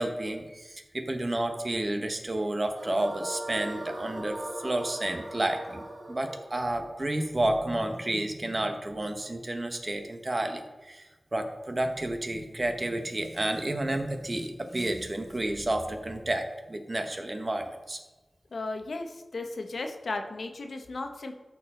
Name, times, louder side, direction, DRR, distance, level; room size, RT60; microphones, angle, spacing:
voice 1, 0.0-5.8 6.1-18.0, right 1 dB, 35° right, 5 dB, 1.1 m, -31 dB
sound 1, 2.8-8.0, right 1 dB, 80° right, 1.5 m, -40 dB
voice 2, 18.5-21.3, left 3 dB, 80° left, 5 dB, 0.9 m, -35 dB
13.0 x 4.7 x 3.8 m, 1.1 s
wide cardioid pair, 65°, 0 cm